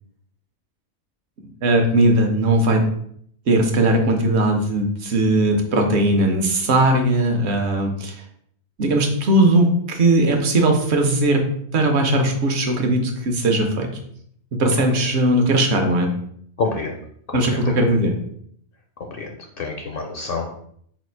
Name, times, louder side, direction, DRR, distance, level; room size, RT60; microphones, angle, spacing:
voice 1, 1.6-2.8 3.5-8.2 8.8-11.4 11.7-13.9 14.6-16.1 17.3-18.1, right 1 dB, 70° right, 3 dB, 1.1 m, -18 dB
voice 2, 16.6-17.0 17.3-17.7 19.0-20.6, left 4 dB, 60° left, 2 dB, 0.7 m, -28 dB
4.2 x 2.4 x 4.4 m, 0.65 s
omnidirectional pair, 1.2 m